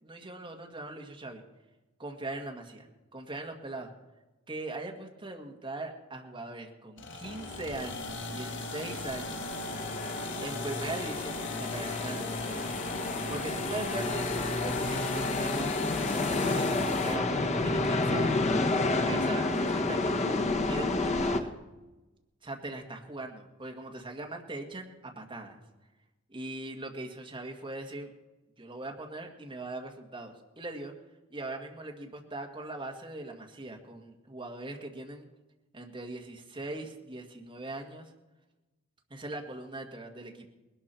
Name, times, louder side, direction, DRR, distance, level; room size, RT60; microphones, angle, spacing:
voice 1, 0.0-1.4 2.0-3.9 4.5-9.5 10.4-12.7 13.3-16.6 17.0-17.3 17.6-18.5 19.1-21.5 22.4-25.6 26.3-28.1 28.6-30.9 31.3-35.3 35.7-38.1 39.1-40.5, right 2 dB, 25° right, 1 dB, 1.7 m, -40 dB
sound 1, 7.0-17.2, left 3 dB, 60° left, 1.3 m, -37 dB
sound 2, 7.2-21.4, left 2 dB, 35° left, 1.1 m, -31 dB
20.5 x 12.0 x 4.5 m, 1.1 s
head